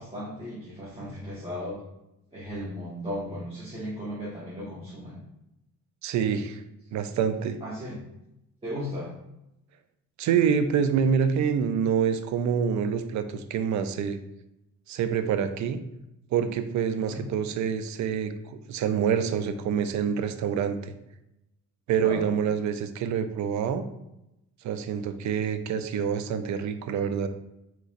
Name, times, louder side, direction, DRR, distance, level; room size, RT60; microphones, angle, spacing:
voice 1, 0.0-1.8 2.3-5.2 7.6-8.0 8.6-9.1 17.0-17.2 22.0-22.3, equal, 20° right, -7 dB, 0.9 m, -36 dB
voice 2, 6.0-6.6 6.9-7.6 10.2-14.2 14.9-15.8 16.3-20.9 21.9-23.8 24.6-27.3, right 7 dB, 70° right, 10 dB, 0.5 m, -26 dB
3.8 x 3.0 x 2.5 m, 0.88 s
cardioid pair, 90°, 30 cm